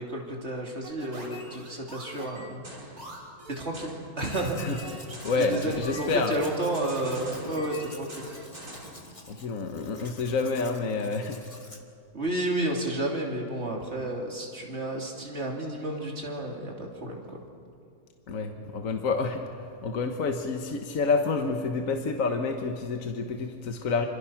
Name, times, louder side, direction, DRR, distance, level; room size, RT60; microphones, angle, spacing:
voice 1, 0.0-2.6 3.5-4.9 5.4-8.4 12.1-17.4, right 1 dB, 45° right, -1 dB, 3.4 m, -31 dB
sound 1, 0.8-9.0, right 1 dB, 75° right, 5.2 m, -43 dB
Domestic sounds home sounds, 4.2-11.8, left 2 dB, 20° left, 1.8 m, -49 dB
voice 2, 5.2-6.4 9.3-11.4 18.3-24.1, left 4 dB, 60° left, 4 dB, 1.6 m, -28 dB
27.0 x 26.0 x 5.9 m, 2.3 s
omnidirectional pair, 1.6 m